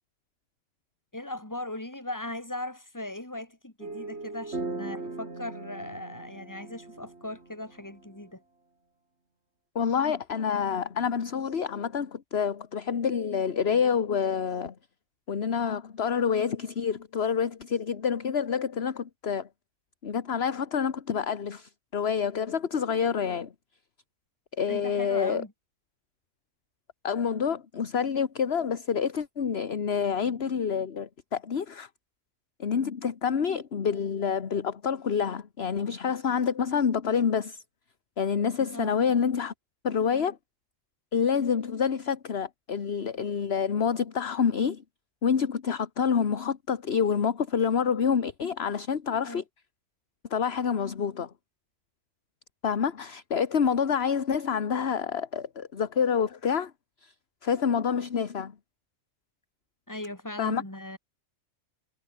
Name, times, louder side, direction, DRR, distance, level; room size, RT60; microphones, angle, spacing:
voice 1, 1.1-8.4 24.7-25.5 38.7-39.0 49.3-49.4 59.9-61.0, left 1 dB, 15° left, 3.9 m, -38 dB
sound 1, 3.8-8.2, right 3 dB, 60° right, 3.5 m, -39 dB
voice 2, 9.7-14.7 15.3-19.5 20.0-23.5 24.6-25.4 27.0-31.9 32.6-37.6 38.2-39.5 39.8-40.4 41.1-44.8 45.2-49.4 50.3-51.3 52.6-56.7 57.0-57.1 57.4-58.5 60.4-60.6, left 7 dB, 55° left, 1.5 m, -27 dB
omnidirectional pair, 1.3 m